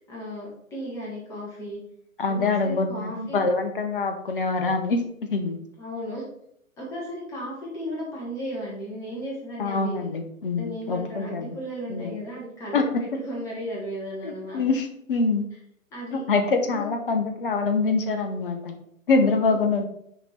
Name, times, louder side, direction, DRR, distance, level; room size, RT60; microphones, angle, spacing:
voice 1, 0.0-1.8 2.3-3.4 5.8-6.2 6.8-10.1 10.6-14.6 15.9-16.2 16.7-16.8, equal, 5° left, -4 dB, 0.9 m, -35 dB
voice 2, 2.2-5.6 9.6-11.6 11.9-12.2 12.7-13.0 14.2-15.4 16.1-18.8 19.1-19.9, left 3 dB, 40° left, 5 dB, 0.9 m, -25 dB
6.1 x 3.7 x 4.3 m, 0.73 s
figure-of-eight pair, 130°, 42 cm